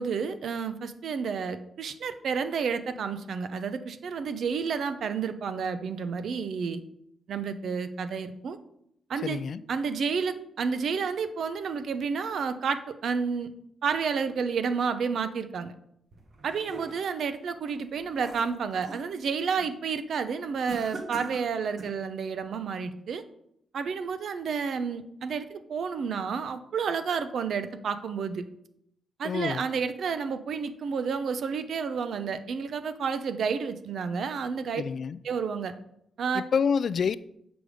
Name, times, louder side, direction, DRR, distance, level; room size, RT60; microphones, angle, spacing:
voice 1, 0.0-6.8 7.3-8.6 9.1-9.4 9.7-13.5 13.8-15.7 16.4-23.2 23.7-28.4 29.2-34.8 35.2-35.7 36.2-36.4, right 6 dB, 70° right, 0.6 m, -30 dB
voice 2, 9.2-9.6 29.2-29.7 34.8-35.2 36.3-37.2, left 6 dB, 60° left, 0.3 m, -28 dB
sound 1, 16.1-17.2 17.7-19.1 19.5-19.8 20.7-22.0, right 4 dB, 55° right, 1.2 m, -42 dB
7.9 x 5.1 x 4.9 m
cardioid pair, 95°, 0 cm